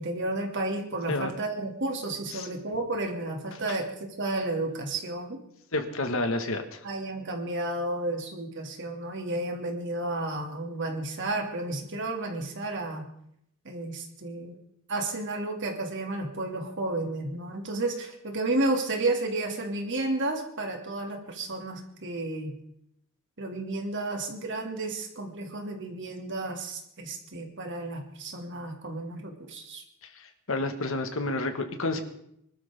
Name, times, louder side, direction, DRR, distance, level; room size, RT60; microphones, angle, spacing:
voice 1, 0.0-5.4 6.8-13.1 13.6-14.6 14.9-22.5 23.4-29.8, right 2 dB, 55° right, 3 dB, 2.7 m, -32 dB
voice 2, 5.7-6.8 30.5-32.0, left 2 dB, 65° left, 6 dB, 1.8 m, -29 dB
25.0 x 12.5 x 3.8 m, 0.74 s
head